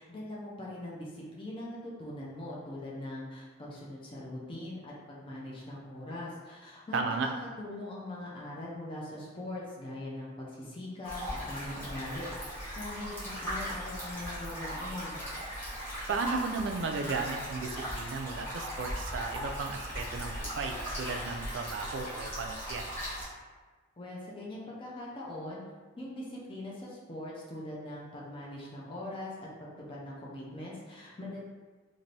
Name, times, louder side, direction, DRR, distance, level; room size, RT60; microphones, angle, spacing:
voice 1, 0.0-12.3 12.7-15.2 24.0-25.6 26.0-31.4, left 1 dB, 25° left, -5 dB, 0.5 m, -41 dB
voice 2, 6.9-7.3 16.1-22.8, right 4 dB, 65° right, 4 dB, 0.3 m, -35 dB
sound 1, 11.0-23.2, equal, 10° left, 1.1 m, -38 dB
2.6 x 2.6 x 3.2 m, 1.3 s
head